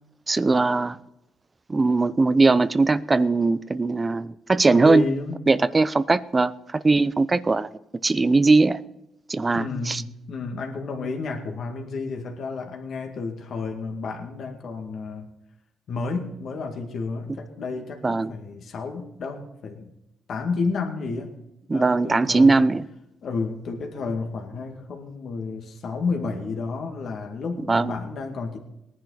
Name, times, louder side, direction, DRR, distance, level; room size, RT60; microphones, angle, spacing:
voice 1, 0.3-1.0 1.7-5.0 5.5-7.7 8.0-8.8 9.3-10.0 18.0-18.3 21.7-22.9 27.7-28.0, right 3 dB, 25° right, 0.7 m, -20 dB
voice 2, 4.7-5.5 9.5-15.3 15.9-19.9 20.3-21.3 21.7-22.6 23.2-28.6, left 4 dB, 60° left, 2.1 m, -31 dB
19.0 x 11.0 x 4.1 m
cardioid pair, 90°, 0 cm